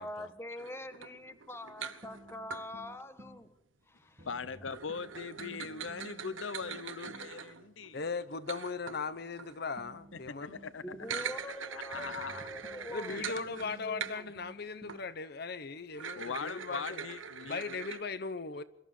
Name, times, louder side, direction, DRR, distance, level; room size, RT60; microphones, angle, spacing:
voice 1, 0.0-3.5 3.9-4.3 10.8-14.3, left 1 dB, 15° left, 1.4 m, -44 dB
sound 1, 0.6-2.7 4.7-9.6 10.9-14.5 14.9-15.0 15.9-18.0, right 7 dB, 85° right, 1.4 m, -43 dB
sound 2, 2.0-3.4 4.2-7.4 9.8-11.2 11.9-15.1, right 1 dB, 40° right, 2.6 m, -54 dB
voice 2, 4.2-8.0 10.1-10.8 11.9-12.5 16.1-17.8, left 5 dB, 80° left, 0.8 m, -41 dB
voice 3, 7.9-10.6 12.9-17.1 17.4-18.6, left 4 dB, 55° left, 0.9 m, -38 dB
23.5 x 14.0 x 8.3 m
head